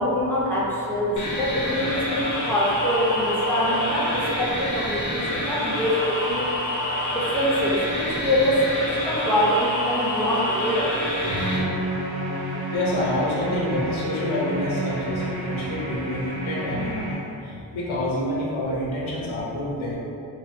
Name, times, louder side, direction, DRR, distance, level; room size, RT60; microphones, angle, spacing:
voice 1, 0.0-6.5 7.1-10.9, equal, 5° left, -8 dB, 0.7 m, -24 dB
sound 1, 1.2-11.6, left 1 dB, 40° left, 0.8 m, -27 dB
sound 2, 11.2-17.1, right 1 dB, 55° right, 0.7 m, -30 dB
voice 2, 12.7-20.0, left 1 dB, 80° left, -6 dB, 0.8 m, -27 dB
3.3 x 2.7 x 2.8 m, 2.7 s
wide cardioid pair, 105°, 47 cm